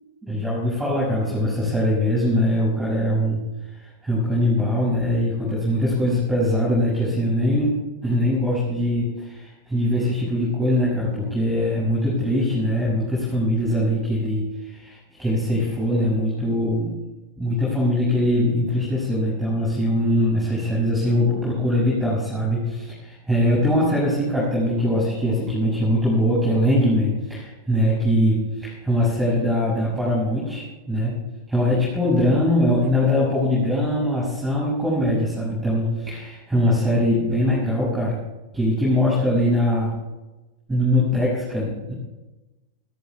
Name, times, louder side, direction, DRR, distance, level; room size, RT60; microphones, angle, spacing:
voice 1, 0.2-3.4 3.7-16.9 17.4-31.2 31.5-38.2 38.5-39.9 40.7-41.9, left 1 dB, 10° right, -7 dB, 6.5 m, -22 dB
29.5 x 13.5 x 2.4 m, 1.1 s
figure-of-eight pair, 90°, 0 cm